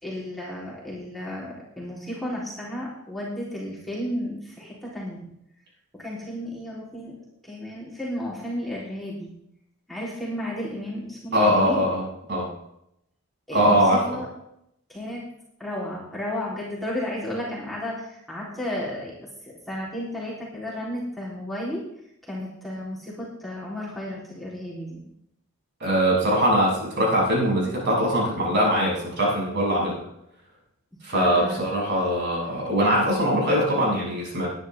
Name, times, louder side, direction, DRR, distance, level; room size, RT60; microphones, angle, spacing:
voice 1, 0.0-5.3 5.9-7.2 7.4-9.3 9.9-11.8 13.5-14.3 14.9-15.3 15.6-19.1 19.4-21.8 22.2-25.0 31.1-31.8, left 1 dB, ahead, -7 dB, 3.8 m, -33 dB
voice 2, 11.3-12.0 12.3-12.5 13.5-14.0 25.8-30.0 31.0-34.5, equal, 50° right, -3 dB, 7.1 m, -22 dB
21.5 x 10.5 x 3.7 m, 0.78 s
head